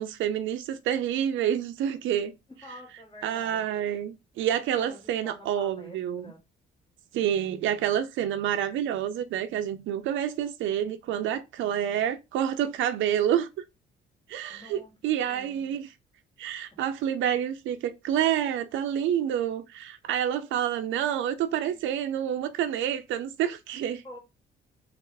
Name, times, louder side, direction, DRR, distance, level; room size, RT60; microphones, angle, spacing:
voice 1, 0.0-2.3 3.2-6.3 7.1-13.5 14.3-15.9 16.4-24.0, right 10 dB, 75° right, 0.4 m, -28 dB
voice 2, 2.5-3.7 4.8-6.4 14.5-15.7 21.6-21.8 24.0-24.2, left 1 dB, 25° left, 1.7 m, -48 dB
3.2 x 2.4 x 3.3 m
cardioid pair, 90°, 20 cm